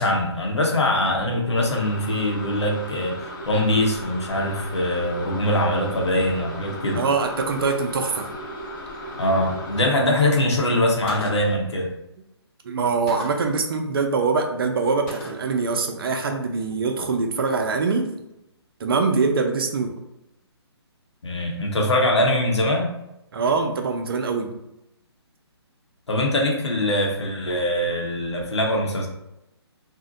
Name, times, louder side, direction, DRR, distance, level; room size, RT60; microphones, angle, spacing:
voice 1, 0.0-7.0 9.2-11.9 21.2-22.9 26.1-29.1, left 1 dB, 80° left, -1 dB, 0.9 m, -22 dB
sound 1, 1.6-9.9, equal, 45° left, 0.8 m, -36 dB
voice 2, 6.9-8.3 12.6-18.1 18.8-19.9 23.3-24.5, right 4 dB, 55° right, 4 dB, 0.5 m, -23 dB
Gunshot gunfire, 11.1-11.7 13.1-13.6 15.1-15.6, equal, 25° left, 1.1 m, -37 dB
2.6 x 2.1 x 3.8 m, 0.89 s
figure-of-eight pair, 145°, 14 cm